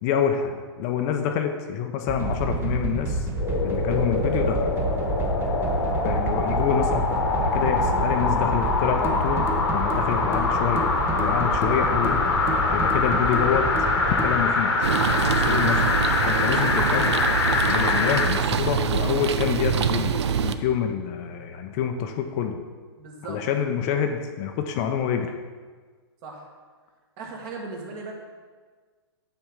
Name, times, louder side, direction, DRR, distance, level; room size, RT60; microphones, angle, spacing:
voice 1, 0.0-3.3 3.6-4.7 6.0-10.9 11.2-12.3 12.7-13.7 14.1-14.8 15.2-17.2 17.7-22.6 23.3-25.3, left 8 dB, 35° left, 5 dB, 0.6 m, -27 dB
sound 1, 2.1-14.3, right 2 dB, 15° right, 0.8 m, -28 dB
sound 2, 3.4-18.3 18.8-18.9, left 3 dB, 80° left, 1.4 m, -24 dB
sound 3, 14.8-20.6, right 7 dB, 80° right, 0.6 m, -25 dB
voice 2, 23.0-23.4 26.2-26.5 27.2-28.1, right 3 dB, 40° right, -1 dB, 1.8 m, -37 dB
8.9 x 3.5 x 6.2 m, 1.5 s
hypercardioid pair, 135°, 14 cm